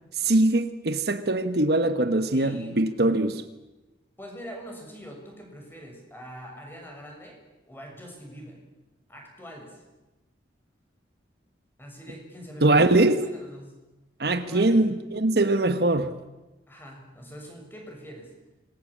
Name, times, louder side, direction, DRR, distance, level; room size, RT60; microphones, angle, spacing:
voice 1, 0.1-3.4 12.6-13.2 14.2-16.1, right 2 dB, 60° right, 1.3 m, -22 dB
voice 2, 2.3-2.8 4.2-7.4 7.7-8.6 9.1-9.8 11.8-12.9 13.3-13.8 14.3-14.8 16.7-18.3, equal, 10° left, 6.8 m, -43 dB
26.0 x 21.5 x 8.6 m
head